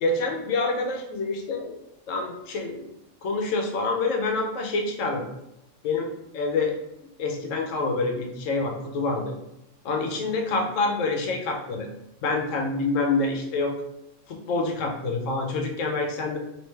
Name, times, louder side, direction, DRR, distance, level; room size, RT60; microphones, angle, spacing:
voice 1, 0.0-1.7 2.1-2.8 3.2-5.2 5.8-6.8 7.2-9.4 9.8-11.9 12.2-13.7 14.3-16.4, left 3 dB, 80° left, 2 dB, 1.0 m, -27 dB
3.2 x 3.0 x 3.1 m, 0.84 s
omnidirectional pair, 1.3 m